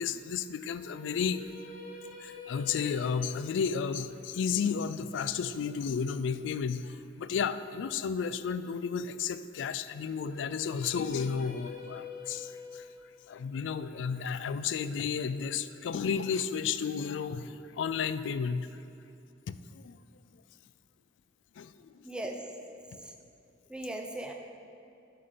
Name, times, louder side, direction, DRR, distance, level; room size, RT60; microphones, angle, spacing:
voice 1, 0.0-1.4 2.2-12.9 13.3-18.7 19.5-20.0 21.6-22.0, left 6 dB, 75° left, 13 dB, 0.3 m, -32 dB
sound 1, 0.7-6.8 10.1-16.2, left 4 dB, 45° left, 0.8 m, -48 dB
voice 2, 22.0-22.4 23.0-23.1 23.7-24.3, right 1 dB, 5° right, 2 dB, 0.6 m, -38 dB
8.5 x 5.1 x 5.6 m, 2.6 s
head